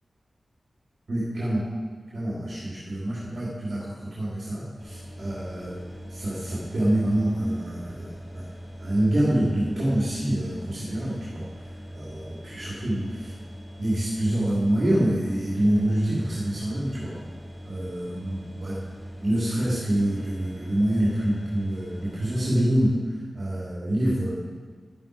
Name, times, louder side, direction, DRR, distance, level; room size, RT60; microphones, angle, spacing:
voice 1, 1.1-1.7 2.1-5.8 6.1-8.4 8.8-11.5 11.9-13.3 13.8-17.2 17.6-18.8 19.2-23.0 23.3-24.3, right 1 dB, 55° right, -7 dB, 2.8 m, -26 dB
sound 1, 4.8-22.5, equal, 10° left, 2.9 m, -41 dB
12.5 x 10.5 x 4.6 m, 1.5 s
wide cardioid pair, 130°, 0 cm